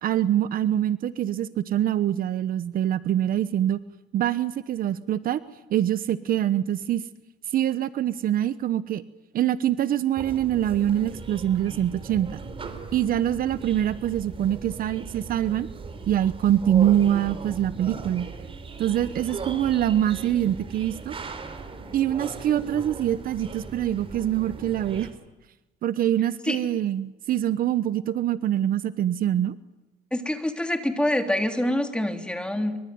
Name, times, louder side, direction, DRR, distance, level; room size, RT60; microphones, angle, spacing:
voice 1, 0.0-3.8 4.1-5.4 5.7-7.0 7.5-9.0 9.3-12.4 12.9-15.7 16.1-18.3 18.8-21.1 21.9-25.1 25.8-29.5, right 11 dB, 60° right, 15 dB, 1.0 m, -24 dB
sound 1, 10.1-25.1, right 4 dB, 30° right, 4.1 m, -38 dB
voice 2, 30.1-32.8, left 1 dB, 5° left, 6 dB, 3.4 m, -26 dB
25.5 x 24.0 x 9.5 m, 1.0 s
cardioid pair, 110°, 17 cm